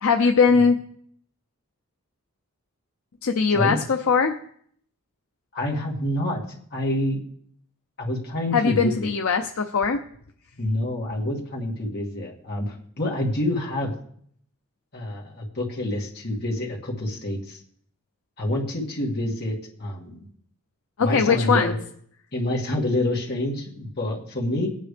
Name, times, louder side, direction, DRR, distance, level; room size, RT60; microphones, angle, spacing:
voice 1, 0.0-0.8 3.2-4.4 8.5-10.0 21.0-21.8, left 5 dB, 65° left, 5 dB, 0.6 m, -20 dB
voice 2, 5.5-6.4 6.7-7.2 8.0-9.1 10.6-13.9 14.9-17.6 18.4-20.3 21.0-21.8 22.3-24.7, left 1 dB, 45° left, -2 dB, 2.3 m, -27 dB
17.5 x 9.2 x 3.4 m, 0.64 s
head